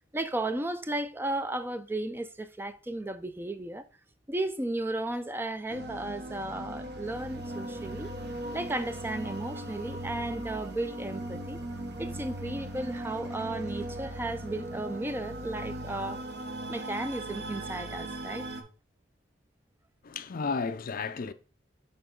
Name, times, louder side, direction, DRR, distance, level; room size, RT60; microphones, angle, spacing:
voice 1, 0.1-3.9 4.3-8.1 8.5-11.6 12.0-16.2 16.7-18.5, right 1 dB, 10° right, 0.4 m, -34 dB
sound 1, 5.7-18.6, right 1 dB, 60° right, 0.9 m, -38 dB
voice 2, 20.0-21.3, left 4 dB, 50° left, 0.5 m, -33 dB
7.0 x 3.8 x 3.8 m
head